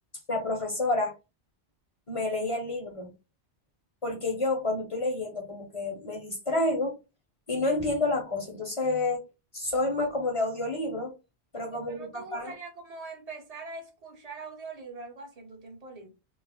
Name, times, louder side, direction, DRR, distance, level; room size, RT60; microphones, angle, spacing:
voice 1, 0.3-1.1 2.1-3.1 4.0-7.0 7.5-9.2 9.5-11.1 11.5-12.5, left 2 dB, 40° left, 0.5 m, -29 dB
voice 2, 11.6-16.1, right 3 dB, 45° right, 0.6 m, -43 dB
2.3 x 2.0 x 3.3 m
omnidirectional pair, 1.1 m